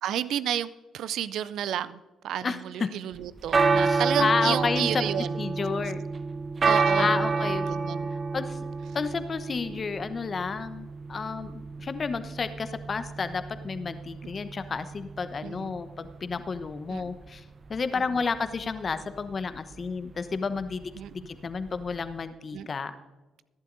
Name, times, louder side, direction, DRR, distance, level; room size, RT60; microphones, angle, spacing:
voice 1, 0.0-5.3 6.6-8.1 15.4-15.8 16.9-17.0 21.0-21.1 22.5-22.7, right 10 dB, 65° right, 0.4 m, -31 dB
voice 2, 2.4-2.9 3.8-6.0 7.0-7.6 8.3-8.6 8.9-17.4 17.7-20.9 21.3-22.9, left 5 dB, 45° left, 1.0 m, -31 dB
sound 1, 3.2-22.2, right 4 dB, 40° right, 0.8 m, -30 dB
22.5 x 11.5 x 2.7 m
hypercardioid pair, 45°, 0 cm